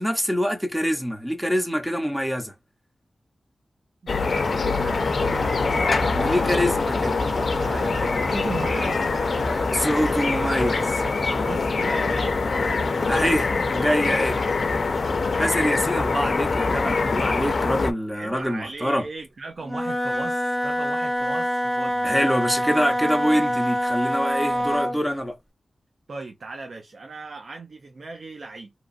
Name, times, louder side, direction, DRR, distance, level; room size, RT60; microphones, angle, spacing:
voice 1, 0.0-2.5 6.1-7.2 9.7-11.0 13.1-13.5 13.7-14.4 15.4-19.1 22.0-25.4, equal, 5° right, 0.8 m, -25 dB
voice 2, 4.0-9.0 11.3-13.4 14.0-14.2 18.1-22.2 24.5-24.7 26.1-28.7, right 3 dB, 65° right, 0.5 m, -38 dB
sound 1, 4.1-17.9, left 4 dB, 65° left, 0.5 m, -24 dB
sound 2, 4.2-11.6, right 2 dB, 85° right, 1.3 m, -36 dB
Wind instrument woodwind instrument, 19.6-25.0, equal, 30° right, 1.7 m, -25 dB
2.9 x 2.4 x 2.5 m
wide cardioid pair, 90°, 0 cm